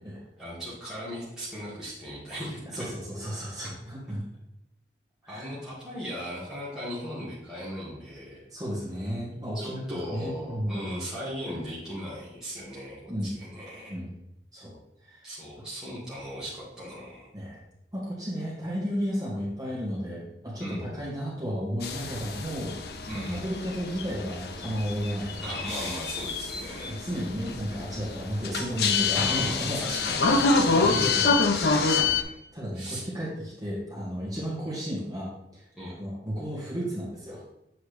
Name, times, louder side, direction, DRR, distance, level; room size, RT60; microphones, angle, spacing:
voice 1, 0.4-2.9 5.3-8.4 9.5-14.0 15.2-17.3 20.6-21.0 23.0-23.4 25.4-27.0 29.1-30.4 31.5-32.4 32.7-33.1 35.8-35.9, equal, 5° right, -10 dB, 2.0 m, -37 dB
voice 2, 2.7-4.2 5.2-5.5 8.5-10.8 13.1-13.3 13.9-14.1 14.5-14.8 15.0-15.2 17.3-17.6 17.9-22.8 23.1-25.4 26.8-30.3 30.6-31.7 32.5-37.4, equal, 20° right, -7 dB, 2.2 m, -33 dB
sound 1, 21.8-32.2, left 4 dB, 65° left, 0.6 m, -27 dB
7.9 x 4.5 x 3.4 m, 0.84 s
head